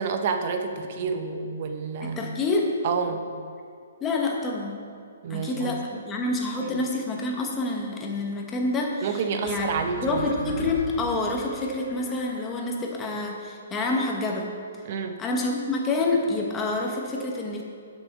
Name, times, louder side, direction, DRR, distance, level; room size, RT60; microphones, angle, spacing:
voice 1, 0.0-2.2 2.8-3.2 5.2-6.0 6.6-6.8 9.0-10.3 14.8-15.2, right 5 dB, 45° right, 6 dB, 0.8 m, -29 dB
voice 2, 2.0-2.6 4.0-4.8 5.3-5.8 6.1-9.7 10.0-14.5 15.2-17.6, left 2 dB, 15° left, 0 dB, 1.1 m, -27 dB
sound 1, 9.5-12.9, left 2 dB, 40° left, 1.2 m, -39 dB
8.2 x 6.1 x 5.4 m, 2.4 s
hypercardioid pair, 155°, 0 cm